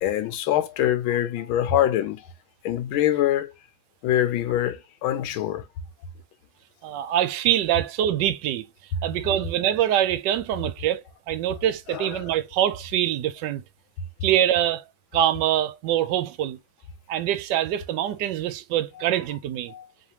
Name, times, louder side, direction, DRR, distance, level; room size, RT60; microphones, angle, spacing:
voice 1, 0.0-2.2 2.6-3.5 4.0-5.6 11.9-12.2 19.7-19.9, left 12 dB, 80° left, 1.4 m, -24 dB
voice 2, 6.8-8.6 9.0-11.0 11.3-13.6 14.2-14.8 15.1-16.6 17.1-19.7, right 11 dB, 75° right, 1.1 m, -24 dB
4.3 x 3.2 x 2.9 m
omnidirectional pair, 2.2 m